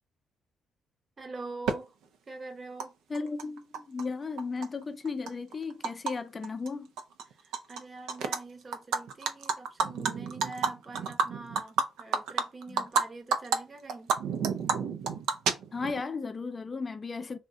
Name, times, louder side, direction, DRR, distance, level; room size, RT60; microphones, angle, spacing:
voice 1, 1.2-1.9 2.3-2.9 7.2-14.1, right 3 dB, 30° right, 0.7 m, -44 dB
Animal, 1.7-1.8 2.8-2.9 3.1-4.0 4.4-6.1 6.4-6.7 7.0-7.8 8.1-8.4 8.7-13.0 13.3-13.6 13.9-16.0, right 5 dB, 85° right, 0.4 m, -29 dB
voice 2, 3.1-6.9 12.7-12.9 15.7-17.4, left 4 dB, 30° left, 0.4 m, -35 dB
2.6 x 2.1 x 3.5 m
cardioid pair, 90°, 0 cm